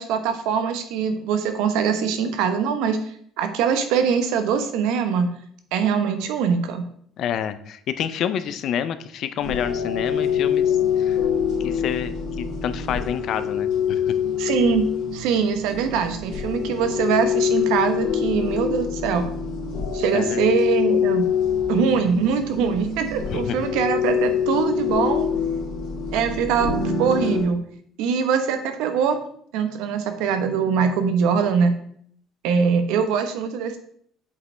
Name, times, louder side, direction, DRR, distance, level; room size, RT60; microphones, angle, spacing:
voice 1, 0.0-3.0 3.4-5.3 5.7-6.9 14.4-14.8 15.1-19.3 19.9-21.3 21.7-25.3 26.1-27.6 28.0-29.2 29.5-31.7 32.4-33.8, right 6 dB, 85° right, 8 dB, 0.9 m, -22 dB
voice 2, 7.2-11.2 11.6-12.1 12.4-14.1 20.1-20.5 23.3-23.6, left 9 dB, 45° left, 12 dB, 0.4 m, -28 dB
sound 1, 9.4-27.4, left 7 dB, 65° left, 2.0 m, -25 dB
7.9 x 5.2 x 3.3 m, 0.63 s
cardioid pair, 180°, 0 cm